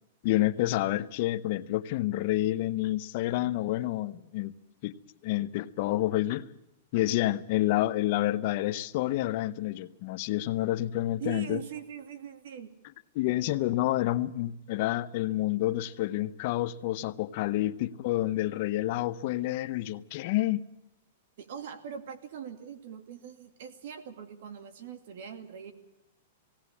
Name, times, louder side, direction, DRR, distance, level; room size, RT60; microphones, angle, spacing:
voice 1, 0.2-4.5 4.8-4.9 5.2-6.5 6.9-11.6 13.2-20.6, left 15 dB, 45° left, 0.8 m, -29 dB
voice 2, 11.2-12.7 21.4-25.7, right 8 dB, 60° right, 2.5 m, -41 dB
19.5 x 17.5 x 8.4 m
supercardioid pair, 160°, 0 cm